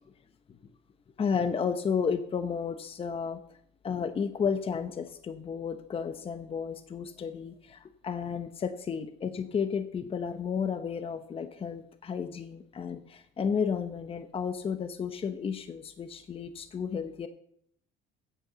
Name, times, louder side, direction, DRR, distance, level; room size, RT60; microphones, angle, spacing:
voice 1, 1.2-3.4 3.8-17.3, left 6 dB, 35° left, 10 dB, 0.8 m, -32 dB
8.8 x 8.0 x 6.8 m, 0.66 s
cardioid pair, 110°, 17 cm